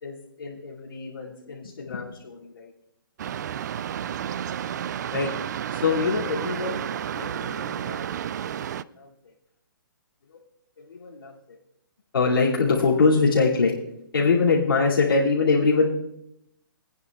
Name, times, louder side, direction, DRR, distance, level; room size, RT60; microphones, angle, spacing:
voice 1, 0.0-2.7 5.1-5.3 5.7-6.8 7.1-8.1 8.6-9.1 10.9-11.3 12.1-13.7 14.1-15.9, left 4 dB, 85° left, -7 dB, 2.6 m, -24 dB
sound 1, 3.2-8.8, right 9 dB, 55° right, 0.4 m, -31 dB
27.0 x 9.3 x 2.4 m, 0.81 s
hypercardioid pair, 150°, 12 cm